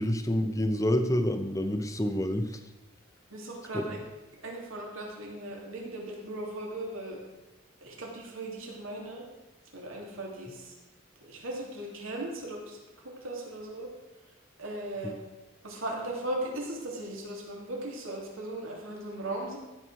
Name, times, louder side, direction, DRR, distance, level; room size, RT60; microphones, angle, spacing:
voice 1, 0.0-2.6 3.7-3.8, equal, 15° left, 8 dB, 0.8 m, -28 dB
voice 2, 3.3-4.0 4.4-7.2 7.8-9.2 9.7-10.7 11.2-12.8 13.2-13.9 14.6-15.2 15.6-19.6, right 1 dB, 80° right, -1 dB, 3.1 m, -37 dB
15.0 x 5.7 x 6.4 m, 1.1 s
head